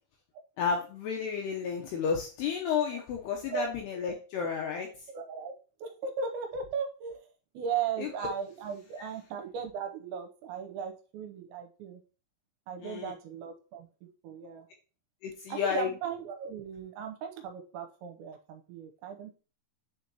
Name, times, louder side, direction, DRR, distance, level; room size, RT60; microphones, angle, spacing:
voice 1, 0.6-4.9 8.0-8.1 12.8-13.1 15.2-15.9, left 6 dB, 85° left, 2 dB, 2.4 m, -32 dB
voice 2, 5.1-12.0 12.7-14.7 15.5-19.3, right 6 dB, 80° right, 4 dB, 2.8 m, -37 dB
9.1 x 4.6 x 2.9 m, 0.35 s
omnidirectional pair, 5.7 m